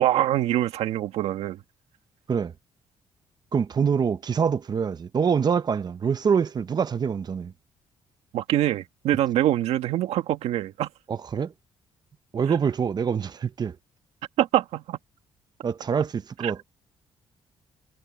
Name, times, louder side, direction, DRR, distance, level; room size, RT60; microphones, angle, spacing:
voice 1, 0.0-1.6 8.3-10.9 14.4-15.0 16.4-16.5, right 13 dB, 90° right, 1.9 m, -24 dB
voice 2, 3.5-7.5 11.1-11.5 12.3-13.8 15.6-16.6, right 6 dB, 40° right, 0.9 m, -25 dB
cardioid pair, 100°, 10 cm